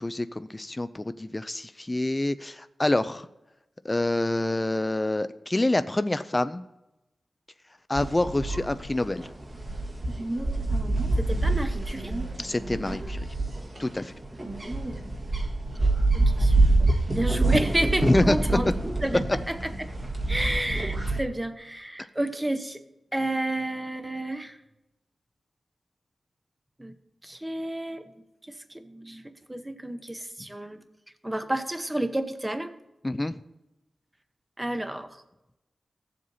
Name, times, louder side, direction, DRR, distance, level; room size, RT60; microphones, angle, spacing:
voice 1, 0.0-3.3 3.8-6.7 7.9-9.3 12.4-13.2 13.8-14.1 18.0-18.6 33.0-33.4, left 1 dB, 20° left, 11 dB, 0.4 m, -26 dB
sound 1, 7.9-21.2, right 2 dB, 40° right, 1.7 m, -26 dB
voice 2, 11.2-12.1 16.1-16.5 17.1-18.7 19.0-19.9 20.3-22.8 23.1-24.5 26.8-26.9 27.2-28.1 28.5-30.8 31.2-32.7 34.6-35.2, right 1 dB, 15° right, 8 dB, 0.8 m, -31 dB
15.5 x 7.5 x 2.7 m, 0.94 s
wide cardioid pair, 100°, 0 cm